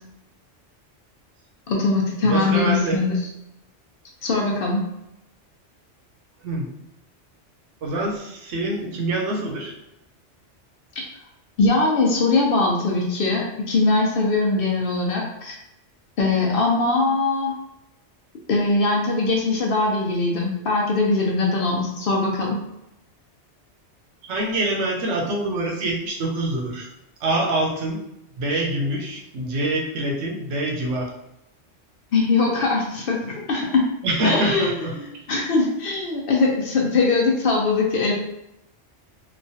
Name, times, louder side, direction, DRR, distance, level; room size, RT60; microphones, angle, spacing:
voice 1, 1.7-3.2 4.2-4.8 11.6-15.5 16.2-17.5 18.5-22.6 32.1-33.8 34.2-38.1, left 3 dB, 60° left, -1 dB, 0.7 m, -21 dB
voice 2, 2.2-3.0 6.4-6.7 7.8-9.7 24.2-26.9 27.2-28.0 28.4-31.1 34.0-34.9, right 1 dB, 85° right, 0 dB, 1.0 m, -25 dB
3.0 x 2.2 x 2.7 m, 0.86 s
omnidirectional pair, 1.2 m